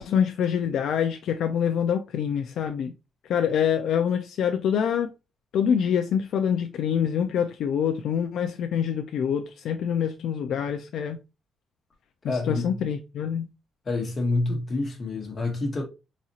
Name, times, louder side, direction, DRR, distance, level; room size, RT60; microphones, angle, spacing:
voice 1, 0.0-2.9 3.3-5.1 5.5-11.2 12.2-13.5, left 8 dB, 70° left, 0.3 m, -25 dB
voice 2, 12.3-12.8 13.8-15.8, left 2 dB, 30° left, 1.1 m, -27 dB
4.0 x 2.4 x 2.7 m
cardioid pair, 170°, 0 cm